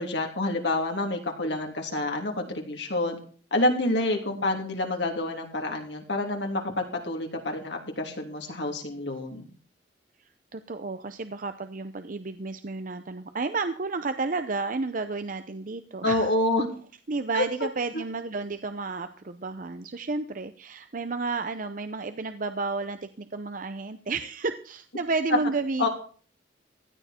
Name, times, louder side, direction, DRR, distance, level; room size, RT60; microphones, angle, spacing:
voice 1, 0.0-3.2 3.5-9.5 16.0-16.7 17.3-17.7 17.9-18.0 25.3-25.4 25.8-25.9, left 2 dB, 75° left, 2 dB, 3.1 m, -28 dB
voice 2, 10.5-16.3 17.1-25.9, right 3 dB, 50° right, 10 dB, 0.7 m, -31 dB
16.0 x 11.5 x 4.4 m, 0.43 s
head